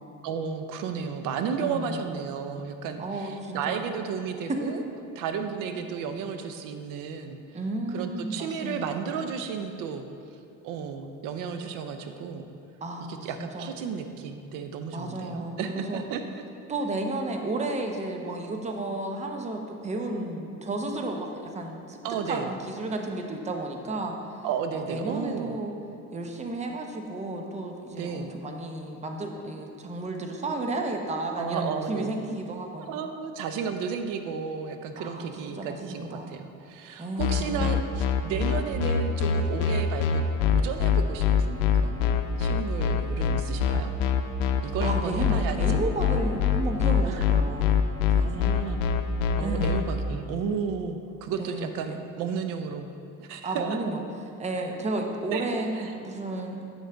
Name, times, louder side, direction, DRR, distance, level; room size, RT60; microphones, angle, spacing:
voice 1, 0.2-4.8 5.2-7.4 7.9-10.0 10.6-12.5 13.1-16.2 22.0-22.5 24.4-25.6 27.9-28.3 31.4-32.2 32.8-40.2 40.5-42.1 42.4-43.9 44.6-45.8 47.0-47.3 48.1-48.8 49.4-52.9 53.2-53.8 55.3-55.5 55.7-55.9, right 6 dB, 70° right, 7 dB, 0.6 m, -33 dB
voice 2, 1.6-2.0 3.0-3.8 4.5-4.7 7.5-8.8 12.8-13.7 14.9-16.0 16.7-22.0 22.3-24.2 24.7-25.7 26.1-33.0 35.0-36.3 37.0-37.7 44.8-47.8 48.2-48.3 49.4-49.7 51.4-52.0 53.4-54.0 54.4-56.7, right 2 dB, 20° right, 3 dB, 0.7 m, -32 dB
sound 1, 37.2-49.8, left 8 dB, 85° left, 0.6 m, -23 dB
8.1 x 6.4 x 3.4 m, 2.6 s
cardioid pair, 115°, 34 cm